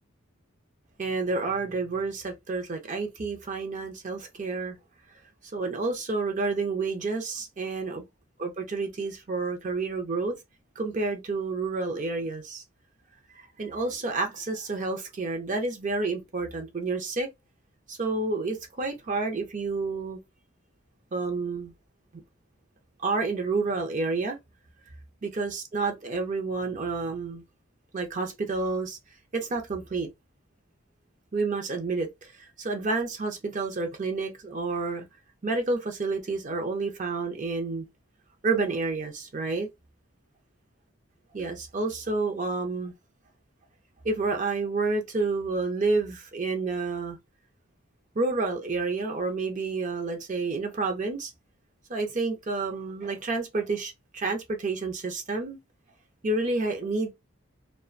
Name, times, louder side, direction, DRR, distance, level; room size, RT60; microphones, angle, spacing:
voice 1, 1.0-4.8 5.5-8.0 8.4-10.4 10.8-12.6 13.6-17.3 17.9-20.2 21.1-21.7 23.0-24.4 25.2-27.4 27.9-29.0 29.3-30.1 31.3-32.3 32.6-35.0 35.4-37.9 38.4-39.7 41.3-42.9 44.0-47.2 48.2-51.3 51.9-55.6 56.2-57.1, right 3 dB, 35° right, 0.5 m, -29 dB
2.3 x 2.1 x 2.4 m
head